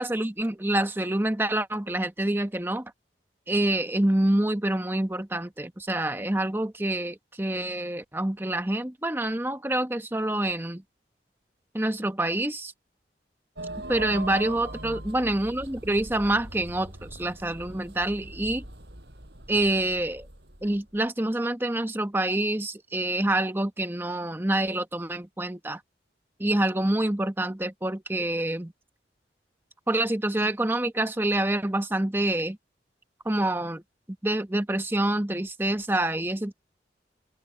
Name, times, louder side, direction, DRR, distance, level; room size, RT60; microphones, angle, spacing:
voice 1, 0.0-2.9 3.5-10.8 11.7-12.7 13.9-18.6 19.5-20.3 20.6-25.8 26.4-28.7 29.9-32.6 33.2-33.8 34.2-36.5, right 1 dB, 10° right, 1.0 m, -27 dB
sound 1, 13.6-21.0, right 1 dB, 70° right, 6.5 m, -41 dB
open air
head